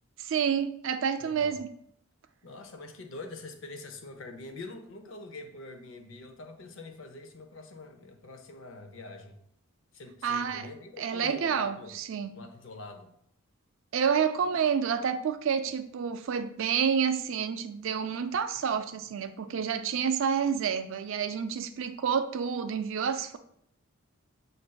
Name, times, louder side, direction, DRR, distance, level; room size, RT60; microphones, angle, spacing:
voice 1, 0.2-1.7 10.2-10.7 11.0-12.3 13.9-23.4, right 7 dB, 60° right, 10 dB, 0.3 m, -29 dB
voice 2, 1.2-1.6 2.4-9.4 9.9-11.9 12.3-13.1, left 2 dB, 60° left, 6 dB, 0.6 m, -45 dB
7.4 x 2.6 x 2.2 m, 0.69 s
head